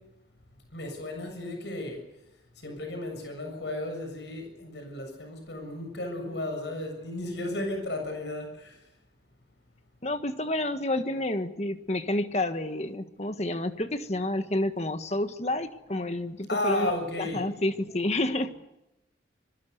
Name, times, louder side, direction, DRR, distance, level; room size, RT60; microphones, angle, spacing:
voice 1, 0.7-2.0 2.6-8.7 16.5-17.5, left 1 dB, 85° left, 4 dB, 7.0 m, -33 dB
voice 2, 10.0-16.9 17.2-18.5, left 1 dB, 40° left, 8 dB, 1.6 m, -29 dB
25.5 x 23.0 x 6.8 m, 0.89 s
head